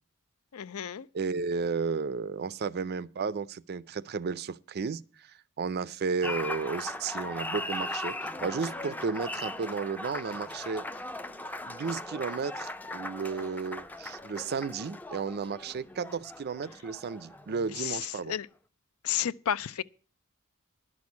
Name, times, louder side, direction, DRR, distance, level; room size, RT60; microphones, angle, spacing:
voice 1, 0.5-1.1 17.8-18.5 19.0-19.8, left 10 dB, 75° left, 0.5 m, -32 dB
voice 2, 1.1-10.9 11.7-18.4, right 5 dB, 50° right, 0.4 m, -33 dB
Applause, 6.2-18.0, left 1 dB, 10° left, 0.5 m, -38 dB
11.5 x 6.2 x 8.3 m
head